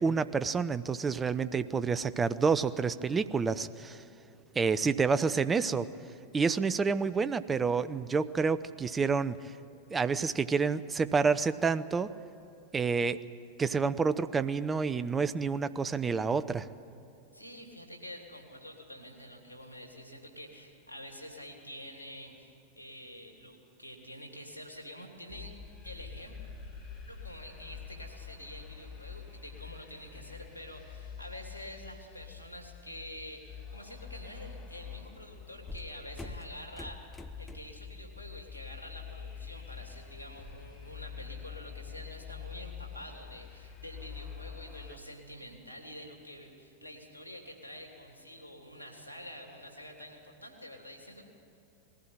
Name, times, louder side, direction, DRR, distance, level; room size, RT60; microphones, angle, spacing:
voice 1, 0.0-4.0 4.6-5.9 6.3-9.4 9.9-12.1 12.7-13.2 13.6-16.7, right 5 dB, 15° right, 13 dB, 0.6 m, -28 dB
voice 2, 17.3-25.5 25.8-26.3 27.1-37.1 37.4-51.2, equal, 85° right, 3 dB, 2.9 m, -47 dB
sound 1, 25.3-45.0, left 6 dB, 45° left, 4.9 m, -46 dB
sound 2, 35.7-37.9 38.3-38.6 38.9-40.6, left 1 dB, 10° left, 0.9 m, -47 dB
20.0 x 15.5 x 8.9 m, 2.8 s
figure-of-eight pair, 90°, 0 cm